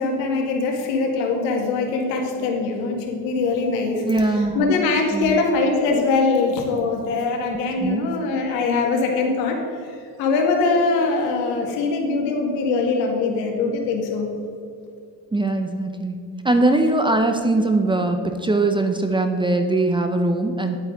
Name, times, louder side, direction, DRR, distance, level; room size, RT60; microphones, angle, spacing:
voice 1, 0.0-4.0 4.5-14.3, left 3 dB, 85° left, 1 dB, 2.1 m, -22 dB
voice 2, 4.1-4.7 5.1-5.4 7.8-8.1 15.3-16.2 16.4-20.8, right 2 dB, 10° right, 5 dB, 0.6 m, -21 dB
10.5 x 8.9 x 3.9 m, 2.5 s
supercardioid pair, 115°, 47 cm